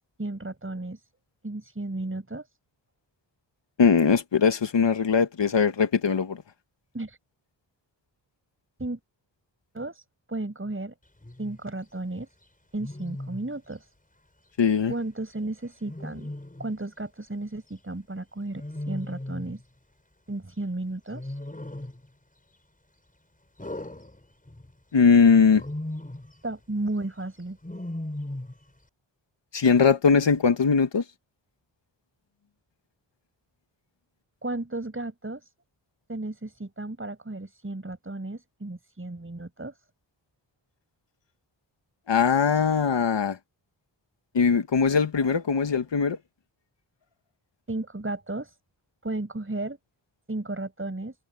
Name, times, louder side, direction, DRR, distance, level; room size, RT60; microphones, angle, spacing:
voice 1, 0.2-1.0 1.4-2.4 6.9-7.2 8.8-9.0 9.7-10.0 10.3-10.9 11.4-12.3 12.7-13.8 14.9-16.3 16.6-19.6 20.3-21.3 26.4-27.6 34.4-35.4 36.1-39.7 47.7-48.5 49.0-49.8 50.3-51.1, right 2 dB, 25° right, 7.5 m, -34 dB
voice 2, 3.8-6.4 14.6-14.9 24.9-25.6 29.5-31.0 42.1-43.4 44.3-46.2, left 6 dB, 65° left, 1.7 m, -20 dB
Wild animals, 11.2-11.6 12.8-13.5 15.9-16.8 18.5-19.6 21.1-22.1 23.6-24.7 25.4-26.3 27.6-28.6, left 1 dB, 15° left, 5.5 m, -37 dB
cardioid pair, 55°, 47 cm